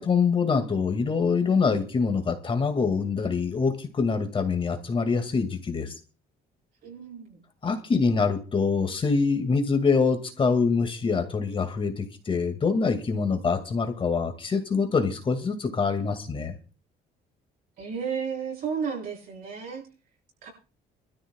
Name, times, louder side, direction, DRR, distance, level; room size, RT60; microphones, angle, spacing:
voice 1, 0.0-6.0 7.6-16.5, left 5 dB, 30° left, 7 dB, 2.2 m, -25 dB
voice 2, 6.8-7.4 17.8-19.8 20.4-20.5, right 6 dB, 60° right, -3 dB, 7.3 m, -33 dB
25.0 x 13.0 x 2.3 m, 0.35 s
cardioid pair, 110°, 17 cm